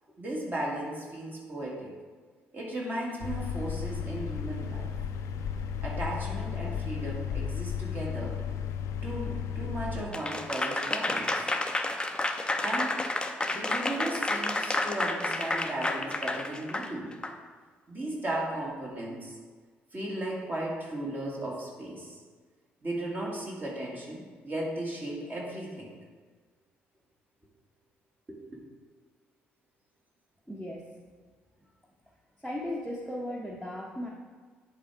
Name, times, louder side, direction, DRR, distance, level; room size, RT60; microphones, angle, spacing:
voice 1, 0.2-1.9 2.5-4.9 5.8-8.4 9.0-11.6 12.6-13.1 13.5-17.1 17.9-19.3 19.9-22.2 22.8-25.9 28.3-28.6, right 1 dB, 30° right, -3 dB, 2.3 m, -36 dB
sound 1, 3.2-10.0, left 7 dB, 60° left, 0.5 m, -34 dB
Applause / Crowd, 10.1-17.3, left 2 dB, 15° left, 0.6 m, -30 dB
voice 2, 30.5-30.9 32.4-34.1, left 1 dB, ahead, -3 dB, 1.1 m, -36 dB
9.9 x 3.7 x 4.7 m, 1.5 s
figure-of-eight pair, 45°, 6 cm